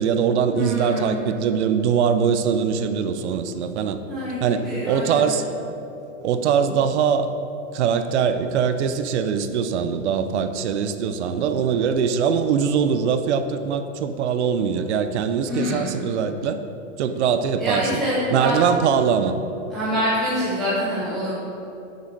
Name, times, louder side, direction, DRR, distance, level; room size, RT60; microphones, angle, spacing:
voice 1, 0.0-4.0 4.4-5.4 6.2-7.3 7.7-16.6 17.0-18.0 18.3-19.4, right 7 dB, 55° right, 9 dB, 0.7 m, -22 dB
voice 2, 0.5-1.2 4.1-5.3 15.5-15.9 17.6-18.6 19.7-21.3, equal, ahead, -13 dB, 0.3 m, -26 dB
7.8 x 6.7 x 6.4 m, 2.8 s
supercardioid pair, 160°, 41 cm